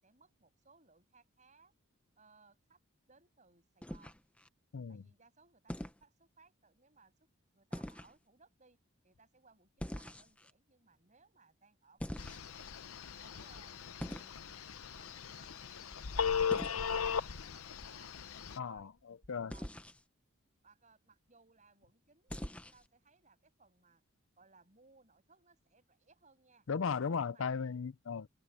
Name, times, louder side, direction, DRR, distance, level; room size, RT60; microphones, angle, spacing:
voice 1, 0.0-1.7 2.2-2.8 3.1-4.2 4.9-7.3 7.5-8.8 9.0-12.7 13.2-18.1 18.6-18.9 19.5-19.7 20.6-24.0 24.4-26.7 27.1-27.7, right 4 dB, 35° right, 6.9 m, -66 dB
sound 1, 3.8-4.5 5.7-6.0 7.7-8.1 9.8-10.5 12.0-12.7 14.0-14.4 16.5-16.8 19.5-20.0 22.3-22.9, equal, 5° left, 0.9 m, -43 dB
voice 2, 4.7-5.0 18.6-19.5 26.7-28.3, left 5 dB, 65° left, 0.5 m, -36 dB
Telephone, 12.2-18.6, left 6 dB, 90° left, 0.9 m, -37 dB
sound 2, 13.5-19.7, equal, 65° right, 6.0 m, -65 dB
head